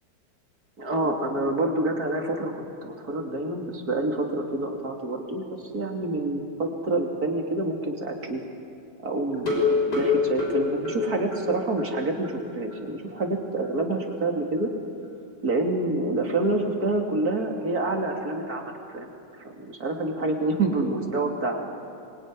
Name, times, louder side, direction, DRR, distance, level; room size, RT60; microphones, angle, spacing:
voice 1, 0.8-8.4 9.0-14.7 15.4-19.1 19.5-21.7, right 2 dB, 55° right, 2 dB, 3.3 m, -27 dB
sound 1, 9.3-11.9 12.2-12.3 12.7-12.8 13.2-13.3, left 5 dB, 60° left, 6.3 m, -25 dB
26.0 x 22.5 x 9.9 m, 2.5 s
omnidirectional pair, 2.0 m